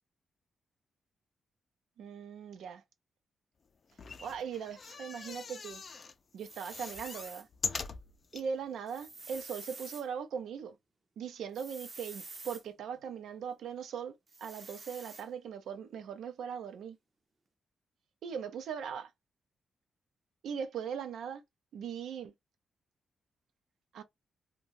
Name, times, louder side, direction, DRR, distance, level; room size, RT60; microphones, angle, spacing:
voice 1, 2.0-2.8 4.2-5.8 6.3-7.5 8.3-10.8 11.2-14.1 14.4-17.0 18.2-19.1 20.4-21.4 21.7-22.3 23.9-24.0, right 7 dB, 90° right, 0.5 m, -39 dB
sound 1, 3.9-6.1 6.5-8.5 9.0-9.1 9.3-9.4, left 5 dB, 35° left, 0.3 m, -41 dB
sound 2, 6.4-7.4 8.9-10.0 11.5-12.6 14.3-15.2, right 3 dB, 30° right, 0.5 m, -48 dB
2.6 x 2.2 x 3.0 m
wide cardioid pair, 160°, 0 cm